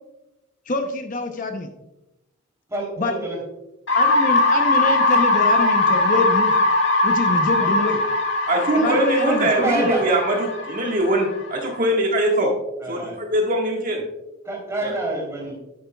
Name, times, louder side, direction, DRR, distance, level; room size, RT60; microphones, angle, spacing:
voice 1, 0.7-1.7 3.0-3.1 3.9-6.6 7.0-8.0 8.7-9.9, left 2 dB, 40° left, 5 dB, 0.7 m, -25 dB
voice 2, 2.7-3.4 7.6-7.7 8.8-9.0 9.4-10.0 12.8-13.2 14.4-15.5, right 2 dB, 15° right, -2 dB, 3.3 m, -27 dB
sound 1, 3.9-11.7, left 2 dB, 65° left, 1.9 m, -20 dB
voice 3, 8.5-12.5 12.9-14.0 14.8-14.9, right 1 dB, 45° right, 0 dB, 1.6 m, -22 dB
10.0 x 9.3 x 2.3 m, 0.95 s
head